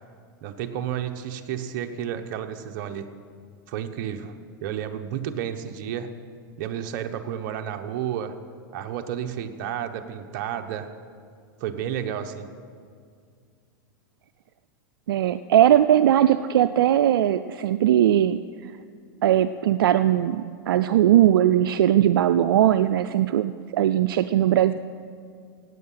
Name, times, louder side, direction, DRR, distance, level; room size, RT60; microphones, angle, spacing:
voice 1, 0.4-3.1 3.7-4.3 4.6-6.2 6.6-8.4 8.7-10.9 11.6-12.5, right 9 dB, 55° right, 7 dB, 1.0 m, -31 dB
voice 2, 15.1-18.4 19.2-24.7, right 11 dB, 85° right, 11 dB, 0.4 m, -19 dB
17.5 x 8.4 x 5.7 m, 2.2 s
hypercardioid pair, 120°, 12 cm